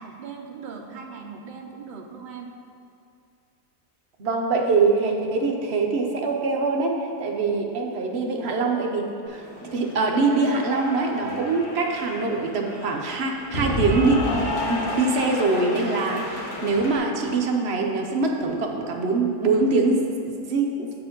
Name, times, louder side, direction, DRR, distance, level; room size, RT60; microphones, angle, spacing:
voice 1, 0.0-2.5, right 5 dB, 80° right, 2 dB, 0.4 m, -39 dB
voice 2, 4.2-20.9, right 3 dB, 55° right, 1 dB, 0.8 m, -24 dB
Cheering / Applause, 9.3-17.0, left 1 dB, 40° left, 1.3 m, -32 dB
8.0 x 4.7 x 5.2 m, 2.5 s
omnidirectional pair, 1.7 m